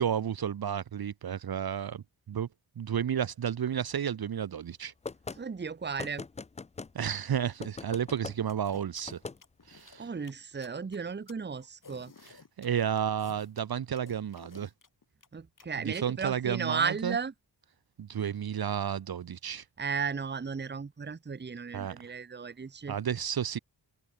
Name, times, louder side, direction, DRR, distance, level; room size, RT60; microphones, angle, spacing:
voice 1, 0.0-2.5 2.8-4.9 6.9-9.2 9.7-10.1 12.2-14.7 15.8-17.2 18.0-19.6 21.7-22.0 22.9-23.6, right 8 dB, 60° right, 0.8 m, -32 dB
sound 1, 5.0-5.4 6.0-6.9 7.6-8.4 9.1-9.4, left 4 dB, 15° left, 0.3 m, -40 dB
voice 2, 5.4-6.2 10.0-12.1 15.3-17.3 19.8-23.0, right 5 dB, 25° right, 0.8 m, -34 dB
sound 2, 8.5-15.7, left 5 dB, 50° left, 6.3 m, -54 dB
wide cardioid pair, 135°, 42 cm